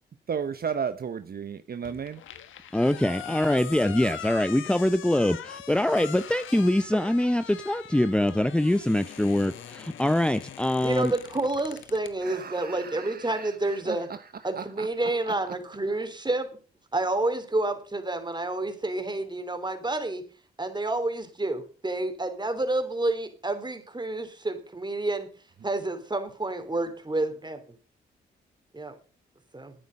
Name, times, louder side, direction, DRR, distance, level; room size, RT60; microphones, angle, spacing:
voice 1, 0.3-2.2 12.2-14.0 14.5-15.1, right 7 dB, 50° right, 0.9 m, -34 dB
sound 1, 1.8-12.1, left 9 dB, 80° left, 1.4 m, -42 dB
voice 2, 2.7-11.1, left 1 dB, 5° left, 0.7 m, -24 dB
voice 3, 10.8-14.1 14.4-16.5 16.9-20.2 20.6-25.3 25.6-27.6 28.7-28.9 29.5-29.7, right 2 dB, 20° right, 3.4 m, -29 dB
12.5 x 9.3 x 5.4 m
supercardioid pair, 55°, 20 cm